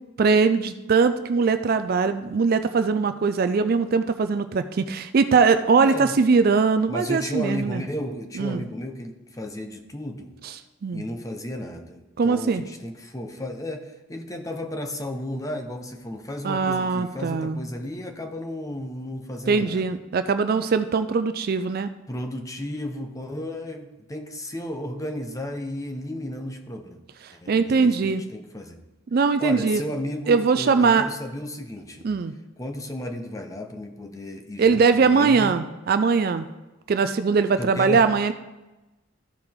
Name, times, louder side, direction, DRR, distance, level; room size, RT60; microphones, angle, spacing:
voice 1, 0.2-7.8 8.4-8.6 10.8-11.0 12.2-12.6 16.4-17.6 19.5-21.9 27.5-28.2 29.1-29.8 30.3-31.0 32.0-32.3 34.6-36.5 36.9-38.3, right 5 dB, 50° right, 10 dB, 0.4 m, -21 dB
voice 2, 5.8-6.1 6.9-10.3 10.9-19.9 22.1-27.0 27.3-28.8 29.4-32.1 32.6-35.5 37.6-38.1, left 1 dB, 15° left, 4 dB, 0.7 m, -33 dB
14.0 x 4.9 x 3.6 m, 1.1 s
head